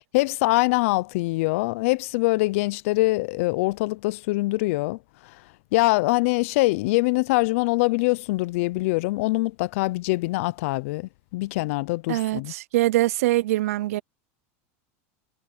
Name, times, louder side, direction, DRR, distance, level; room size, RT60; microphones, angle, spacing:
voice 1, 0.1-5.0 5.7-12.5, left 22 dB, 70° left, 0.5 m, -23 dB
voice 2, 12.1-14.0, right 16 dB, 80° right, 0.5 m, -23 dB
supercardioid pair, 135°, 8 cm